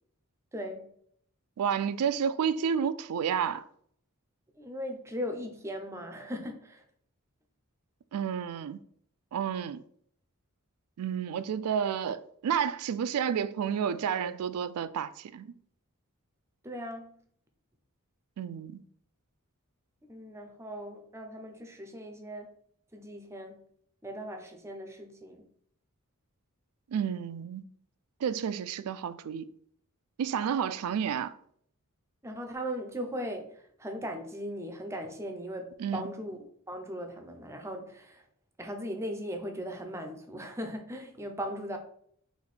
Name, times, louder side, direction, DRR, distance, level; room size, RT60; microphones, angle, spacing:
voice 1, 0.5-0.9 4.6-6.8 16.6-17.2 20.1-22.5 22.9-23.6 24.0-25.5 32.2-36.4 36.7-38.2 38.6-41.8, equal, 10° right, 0.5 m, -38 dB
voice 2, 1.6-3.6 8.1-8.8 9.3-9.8 11.0-15.5 18.4-18.8 26.9-27.6 28.2-29.4 30.2-31.3 35.8-36.1, right 7 dB, 85° right, 0.3 m, -30 dB
4.1 x 2.6 x 4.1 m
head